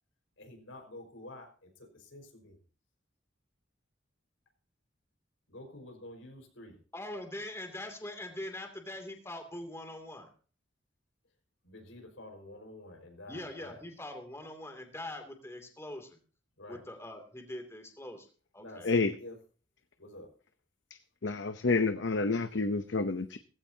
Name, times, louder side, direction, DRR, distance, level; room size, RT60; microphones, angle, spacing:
voice 1, 0.4-2.6 5.5-6.8 11.6-13.8 16.6-16.8 18.6-19.4 20.0-20.3, left 1 dB, 85° left, 4 dB, 5.0 m, -49 dB
voice 2, 6.9-10.3 13.3-16.2 16.7-18.3 18.5-18.9, left 1 dB, 15° left, 5 dB, 2.6 m, -43 dB
voice 3, 21.2-23.4, left 3 dB, 65° left, 10 dB, 0.8 m, -29 dB
17.5 x 16.0 x 2.8 m, 0.39 s
head